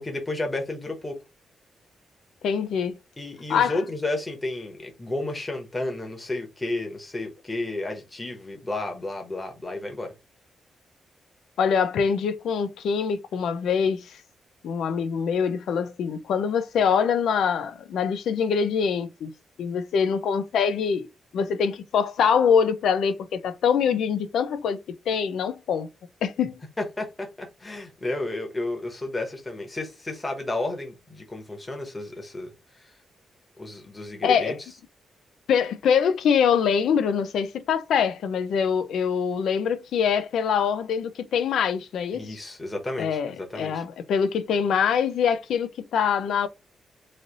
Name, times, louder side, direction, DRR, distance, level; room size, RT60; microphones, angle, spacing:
voice 1, 0.0-1.2 3.2-10.1 26.8-32.5 33.6-34.6 42.1-43.8, left 2 dB, 20° left, 1.0 m, -32 dB
voice 2, 2.4-3.0 3.5-3.8 11.6-14.2 14.6-19.3 19.6-21.1 21.3-24.8 25.1-25.9 26.2-26.6 34.2-34.6 35.5-42.4 43.0-46.5, left 7 dB, 90° left, 0.5 m, -24 dB
3.2 x 2.6 x 3.8 m
wide cardioid pair, 145°, 0 cm